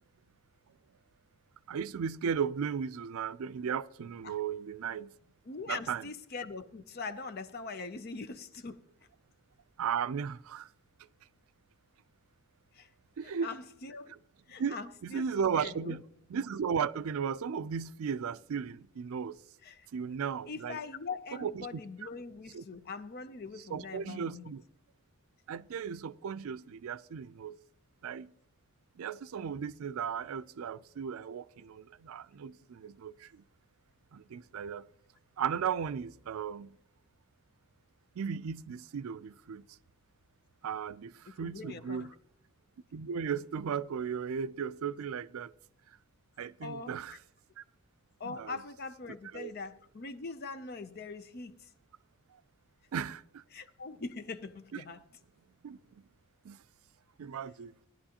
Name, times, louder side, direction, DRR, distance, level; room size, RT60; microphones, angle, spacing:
voice 1, 1.7-5.1 5.7-6.0 9.8-10.7 13.2-13.5 14.1-14.2 14.6-14.8 15.0-16.0 16.3-19.4 19.9-20.8 21.4-21.8 22.5-22.6 23.7-24.6 25.5-27.6 28.0-28.3 29.0-33.4 34.1-34.9 35.4-36.8 38.2-39.7 40.6-42.1 42.9-45.5 46.4-47.2 47.6-47.7 48.2-48.6 49.3-49.5 52.9-53.4 55.6-55.8 56.4-56.6 57.2-57.9, right 7 dB, 75° right, 0.4 m, -36 dB
voice 2, 5.5-8.9 12.7-12.9 13.2-14.1 14.5-15.3 15.5-16.0 19.6-19.9 20.5-24.5 41.3-42.1 46.6-47.0 48.2-51.7 53.5-55.0, left 4 dB, 45° left, 0.5 m, -42 dB
18.0 x 10.5 x 2.9 m
head